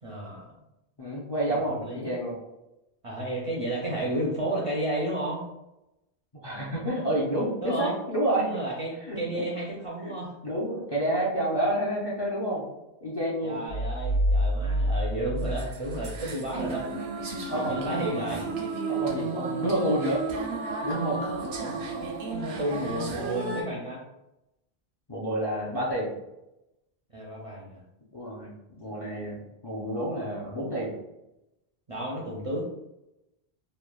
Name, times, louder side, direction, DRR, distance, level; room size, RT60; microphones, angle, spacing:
voice 1, 0.0-0.5 1.8-2.1 3.0-5.4 7.6-7.9 8.4-10.3 13.4-16.9 17.5-18.5 19.0-19.1 21.4-21.9 22.3-24.0 27.1-27.8 31.9-32.6, right 1 dB, 50° right, -4 dB, 0.4 m, -32 dB
voice 2, 1.0-2.4 6.4-8.5 9.1-9.5 10.0-10.1 10.4-12.6 13.0-13.6 17.5-17.9 18.9-20.2 20.8-21.2 23.5-23.7 25.1-26.1 28.1-30.9, right 1 dB, 40° left, -5 dB, 0.4 m, -29 dB
sound 1, 13.7-16.6, equal, 55° left, 1.4 m, -27 dB
sound 2, 15.4-23.6, right 3 dB, 80° right, 0.8 m, -33 dB
3.1 x 2.2 x 2.3 m, 0.91 s
omnidirectional pair, 1.0 m